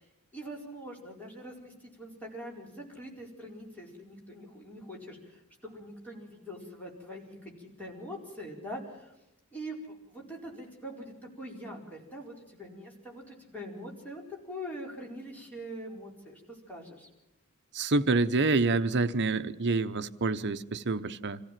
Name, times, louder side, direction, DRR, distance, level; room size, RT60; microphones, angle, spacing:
voice 1, 0.0-9.1 9.5-17.1, equal, 5° left, 4.6 m, -43 dB
voice 2, 17.7-21.4, right 3 dB, 50° right, 0.9 m, -27 dB
26.0 x 15.5 x 7.5 m
head